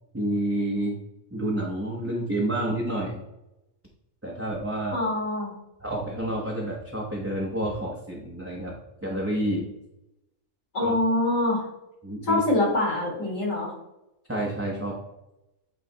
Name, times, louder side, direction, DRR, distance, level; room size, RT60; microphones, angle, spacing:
voice 1, 0.1-1.0 1.3-3.2 4.2-5.0 5.8-8.8 9.0-9.7 10.8-10.9 12.0-12.4 14.3-15.0, right 1 dB, 15° right, -3 dB, 0.7 m, -29 dB
voice 2, 4.9-5.5 10.7-11.6 12.3-13.7, left 2 dB, 65° left, -2 dB, 2.5 m, -24 dB
8.1 x 3.2 x 3.9 m, 0.91 s
omnidirectional pair, 1.4 m